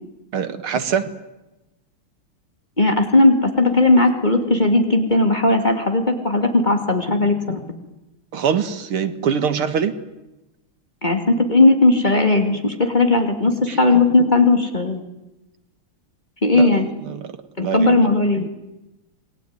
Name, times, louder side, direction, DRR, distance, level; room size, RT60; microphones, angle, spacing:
voice 1, 0.3-1.1 8.3-9.9 13.7-13.8 16.5-17.3 17.6-17.9 18.4-18.5, right 7 dB, 75° right, 10 dB, 2.5 m, -23 dB
voice 2, 2.8-7.6 11.0-15.0 16.4-16.9 17.6-18.5, left 2 dB, 20° left, 5 dB, 2.6 m, -17 dB
28.0 x 21.0 x 9.6 m, 0.98 s
omnidirectional pair, 2.4 m